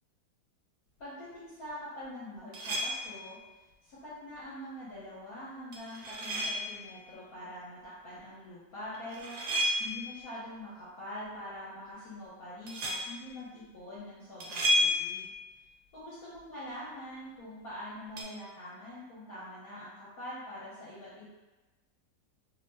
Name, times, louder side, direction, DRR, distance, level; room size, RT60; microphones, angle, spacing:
voice 1, 1.0-3.4 3.8-9.4 9.8-15.3 15.9-21.3, left 1 dB, 65° left, -10 dB, 1.2 m, -44 dB
sound 1, 2.5-3.3 5.7-6.9 8.9-10.2 12.7-13.2 14.4-15.4 18.2-18.3, equal, 70° right, 1.2 m, -31 dB
3.0 x 2.0 x 3.3 m, 1.1 s
omnidirectional pair, 1.9 m